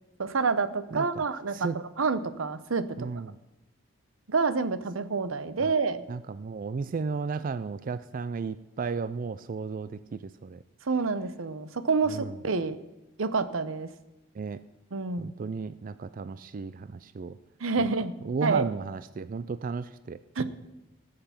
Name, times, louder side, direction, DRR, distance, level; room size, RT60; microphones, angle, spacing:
voice 1, 0.2-1.7 2.0-3.1 4.3-6.0 10.9-12.8 13.2-13.9 14.9-15.3 17.6-18.1 18.4-18.7 20.4-20.5, right 4 dB, 90° right, 13 dB, 0.8 m, -28 dB
voice 2, 0.9-1.2 1.5-1.8 3.0-3.3 6.1-9.9 10.4-10.6 12.1-12.3 14.4-14.6 15.2-17.4 17.8-17.9 18.3-20.2, right 4 dB, 45° right, 14 dB, 0.4 m, -34 dB
19.0 x 6.7 x 5.8 m, 1.0 s
head